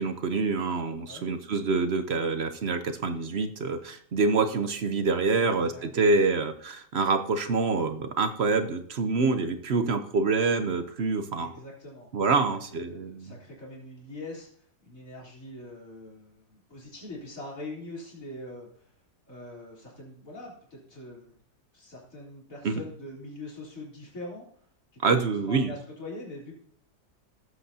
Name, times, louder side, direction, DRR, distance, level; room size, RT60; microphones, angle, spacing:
voice 1, 0.0-11.5 12.1-13.4 22.6-22.8 25.0-25.7, right 4 dB, 50° right, 8 dB, 0.8 m, -26 dB
voice 2, 5.3-6.3 11.3-12.1 12.4-14.5 14.8-18.9 19.3-21.3 21.7-24.5 25.4-26.5, left 2 dB, 55° left, -4 dB, 3.9 m, -43 dB
17.5 x 8.0 x 2.8 m, 0.62 s
omnidirectional pair, 1.7 m